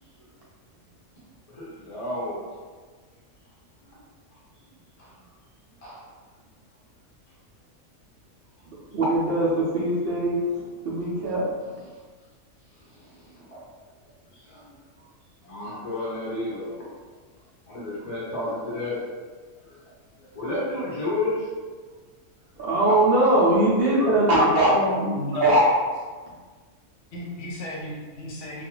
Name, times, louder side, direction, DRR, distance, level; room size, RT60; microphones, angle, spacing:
voice 1, 1.5-2.5 5.0-5.1 5.8-6.1 12.9-13.7 14.3-14.7 15.4-16.9 17.7-19.1 19.7-19.8 20.3-21.5 23.9-24.1, left 2 dB, 40° left, -6 dB, 0.5 m, -32 dB
voice 2, 8.9-10.4 10.8-11.5 22.6-25.1 25.4-25.6, right 1 dB, 60° right, -6 dB, 0.6 m, -21 dB
voice 3, 24.3-24.8 25.1-25.6 27.1-28.6, left 2 dB, 70° left, -3 dB, 0.9 m, -32 dB
2.4 x 2.3 x 2.9 m, 1.4 s
omnidirectional pair, 1.4 m